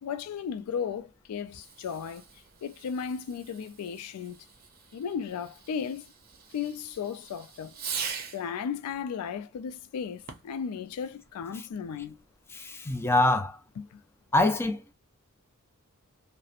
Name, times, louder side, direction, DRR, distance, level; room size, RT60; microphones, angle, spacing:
voice 1, 0.0-2.2 2.6-4.4 4.9-6.0 6.5-7.8 8.3-12.2 13.8-14.0, left 7 dB, 75° left, 0.3 m, -35 dB
Fireworks, 1.4-8.5 10.2-10.7, right 7 dB, 40° right, 0.6 m, -42 dB
voice 2, 12.5-13.6 14.3-14.8, left 2 dB, 10° left, 0.4 m, -24 dB
2.8 x 2.0 x 2.4 m
head